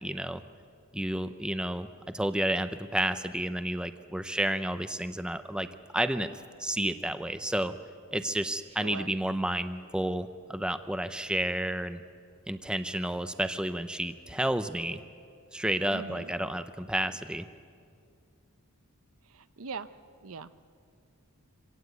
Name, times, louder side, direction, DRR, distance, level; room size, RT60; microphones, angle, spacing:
voice 1, 0.0-0.4 0.9-1.9 2.1-5.7 5.9-6.3 6.6-7.7 8.1-12.0 12.5-15.0 15.5-17.5, right 1 dB, 5° right, 10 dB, 0.6 m, -31 dB
voice 2, 8.8-9.1 15.9-16.3 19.2-19.9 20.2-20.5, right 4 dB, 70° right, 13 dB, 0.7 m, -41 dB
25.5 x 17.5 x 8.1 m, 2.3 s
head